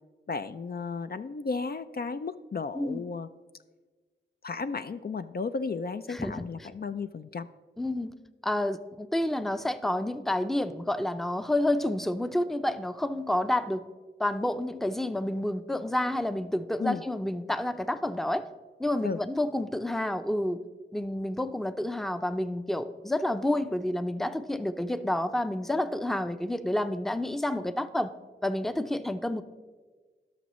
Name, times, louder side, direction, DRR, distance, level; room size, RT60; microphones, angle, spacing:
voice 1, 0.3-3.3 4.4-7.5 16.8-17.0 19.0-19.2, left 4 dB, 55° left, 10 dB, 0.4 m, -34 dB
voice 2, 2.7-3.1 6.1-6.5 7.8-8.1 8.4-13.9 14.2-18.5 18.8-20.6 20.9-28.1 28.4-29.4, left 1 dB, ahead, 11 dB, 0.5 m, -29 dB
17.5 x 6.2 x 3.1 m, 1.4 s
cardioid pair, 45°, 19 cm